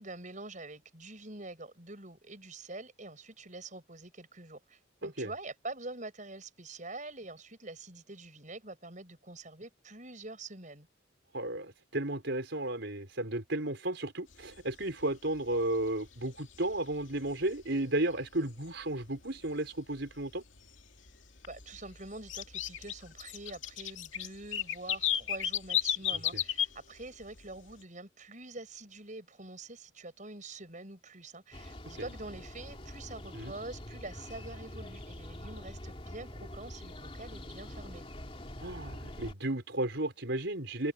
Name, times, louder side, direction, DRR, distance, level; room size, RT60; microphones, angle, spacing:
voice 1, 0.0-10.9 21.5-38.1, right 2 dB, 40° right, 7.7 m, -46 dB
voice 2, 11.3-20.4 31.9-32.0 33.3-33.6 38.6-40.9, right 1 dB, 65° right, 4.8 m, -33 dB
sound 1, 14.3-14.4 14.8-15.0 15.3-15.8 16.2-17.4 17.8-17.9 18.4-18.5 19.1-19.2 19.5-19.6 20.0-20.8 21.1-26.7 27.0-27.4, left 10 dB, 75° left, 2.3 m, -33 dB
sound 2, 31.5-39.3, left 1 dB, 30° left, 3.0 m, -45 dB
head